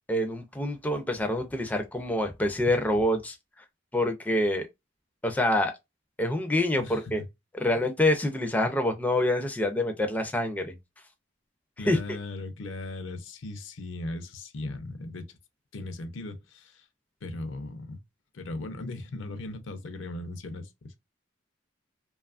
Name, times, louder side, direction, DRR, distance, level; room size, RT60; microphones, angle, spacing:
voice 1, 0.1-3.4 3.9-4.7 5.2-5.7 6.2-7.2 7.6-10.7 11.9-12.0, left 1 dB, 10° left, 0.4 m, -26 dB
voice 2, 6.8-7.3 11.8-15.4 15.7-16.9 17.2-18.0 18.3-21.0, left 2 dB, 75° left, 0.6 m, -38 dB
2.7 x 2.3 x 2.3 m
head